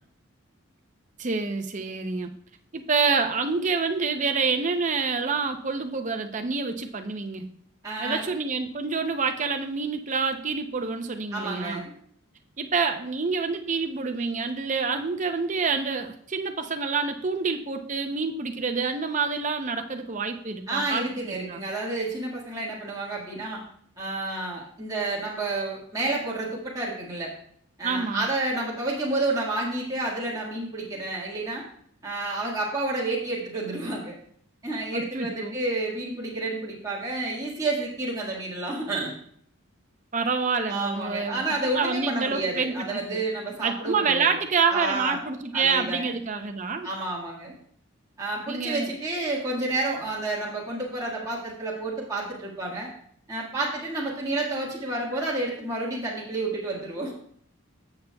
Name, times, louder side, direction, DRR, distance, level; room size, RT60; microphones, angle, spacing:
voice 1, 1.2-2.3 2.7-7.5 8.0-11.8 12.6-21.0 21.3-21.6 27.8-28.3 34.9-35.6 40.1-43.2 43.6-46.9 48.5-48.9, right 4 dB, 35° right, 6 dB, 0.6 m, -27 dB
voice 2, 7.8-8.3 11.3-11.9 20.7-23.6 24.0-27.3 27.8-31.6 32.0-34.1 34.6-39.1 40.7-44.3 44.7-45.2 45.5-46.1 46.8-47.5 48.2-52.9 53.3-57.1, right 2 dB, 15° right, -6 dB, 1.7 m, -30 dB
14.0 x 6.7 x 2.3 m, 0.65 s
head